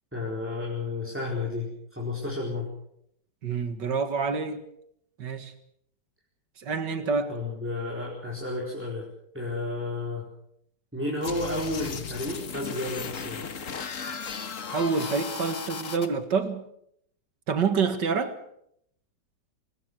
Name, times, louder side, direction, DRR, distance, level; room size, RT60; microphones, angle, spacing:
voice 1, 0.1-2.7 7.3-9.1 9.3-10.3 10.9-13.4, left 2 dB, 5° right, -3 dB, 4.6 m, -32 dB
voice 2, 3.4-4.6 5.2-5.5 6.6-7.3 14.7-16.6 17.5-18.4, right 5 dB, 75° right, 10 dB, 2.5 m, -27 dB
sound 1, 11.2-16.1, left 6 dB, 50° left, 1.7 m, -36 dB
24.5 x 20.5 x 6.4 m, 0.70 s
omnidirectional pair, 1.9 m